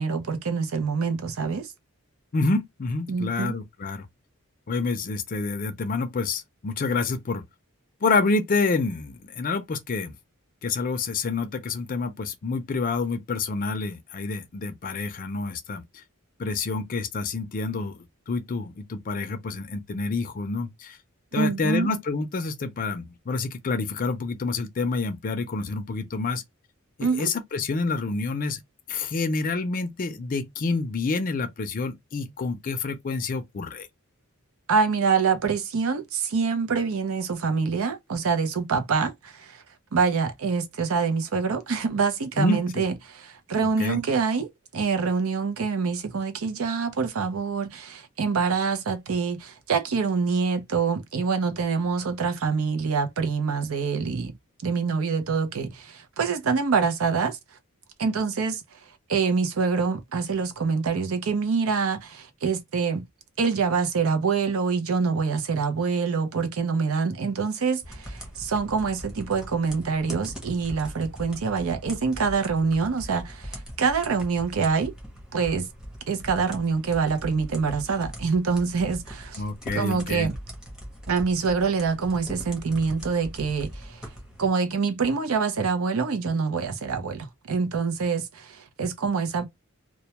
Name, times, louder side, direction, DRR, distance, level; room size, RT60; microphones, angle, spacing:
voice 1, 0.0-1.7 3.1-3.6 21.4-21.9 27.0-27.3 34.7-39.6 39.9-44.5 44.7-54.3 54.6-57.4 58.0-58.6 59.1-63.0 63.4-74.9 75.3-75.7 76.1-79.4 79.7-80.4 81.1-84.1 84.4-89.5, right 5 dB, 80° right, 0.6 m, -25 dB
voice 2, 2.3-4.1 4.7-7.4 8.0-10.2 10.6-15.8 16.4-21.0 21.3-26.4 27.1-28.6 28.9-33.9 42.4-42.8 43.8-44.0 79.4-80.3, left 3 dB, 40° left, 0.4 m, -28 dB
sound 1, 67.8-84.5, equal, 5° right, 0.7 m, -41 dB
2.2 x 2.2 x 2.8 m
head